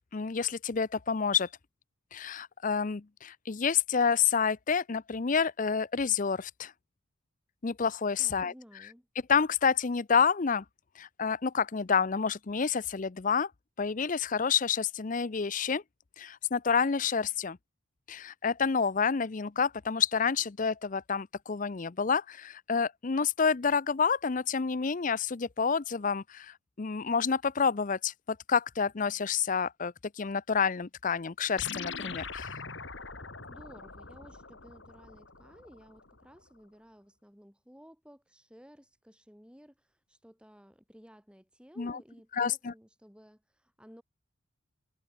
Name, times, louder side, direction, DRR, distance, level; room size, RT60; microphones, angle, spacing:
voice 1, 0.1-1.5 2.1-6.7 7.6-8.5 9.3-10.6 11.0-13.5 13.8-15.8 16.2-17.6 18.1-32.6 41.8-42.0 42.3-42.7, left 6 dB, 35° left, 0.5 m, -29 dB
voice 2, 8.2-9.1 33.1-44.0, equal, 5° right, 6.6 m, -55 dB
sound 1, 31.6-36.2, left 5 dB, 55° left, 3.1 m, -42 dB
head